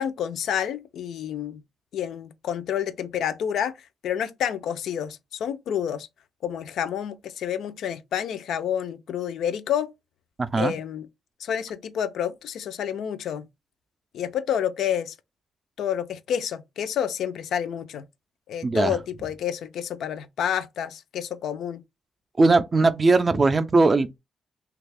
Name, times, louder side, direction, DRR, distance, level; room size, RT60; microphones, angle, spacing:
voice 1, 0.0-1.6 1.9-3.7 4.0-6.1 6.4-9.9 10.6-11.1 11.4-13.5 14.1-15.1 15.8-18.0 18.5-21.8, left 9 dB, 85° left, 0.4 m, -29 dB
voice 2, 10.4-10.7 18.6-19.0 22.4-24.2, right 3 dB, 25° right, 0.3 m, -20 dB
3.2 x 2.3 x 3.3 m
cardioid pair, 145°, 0 cm